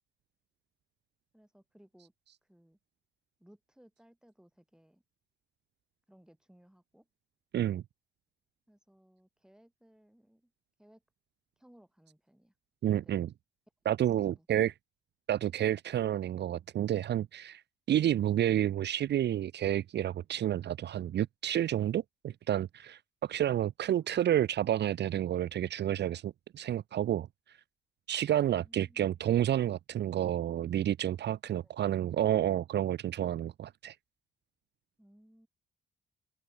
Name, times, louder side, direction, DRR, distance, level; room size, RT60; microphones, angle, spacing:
voice 1, 1.3-2.1 2.4-2.8 3.4-5.0 6.1-7.1 8.7-10.5 10.8-11.0 11.6-12.5 13.0-13.2 14.0-14.5 28.5-29.4 35.0-35.5, equal, 5° right, 7.4 m, -62 dB
voice 2, 12.8-13.3 13.9-14.7 15.3-17.6 17.9-27.3 28.1-33.9, right 11 dB, 60° right, 0.7 m, -30 dB
open air
cardioid pair, 90°, 20 cm